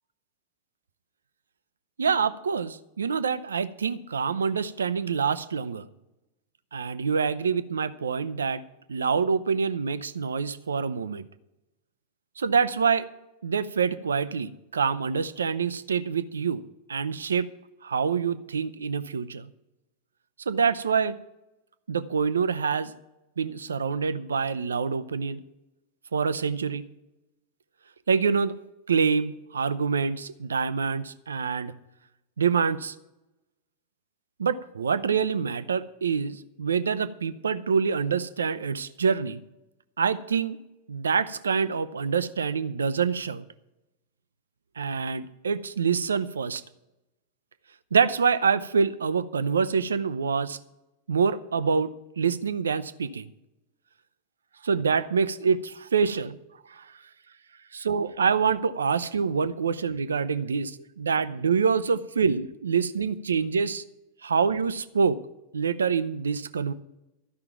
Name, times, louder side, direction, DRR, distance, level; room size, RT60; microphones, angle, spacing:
voice 1, 2.0-5.9 6.7-8.6 8.9-11.2 12.4-13.1 13.4-16.6 16.9-17.5 17.8-19.5 20.5-21.2 21.9-22.9 23.4-25.4 26.1-26.9 28.1-28.6 28.9-31.8 32.4-33.0 34.4-39.4 40.0-40.6 40.9-43.4 44.8-46.6 47.9-50.6 51.1-51.9 52.2-53.3 54.6-56.4 56.7-56.9 57.7-63.8 64.2-65.2 65.5-66.7, right 6 dB, 70° right, 15 dB, 0.5 m, -26 dB
12.5 x 5.8 x 9.1 m, 0.94 s
figure-of-eight pair, 90°, 0 cm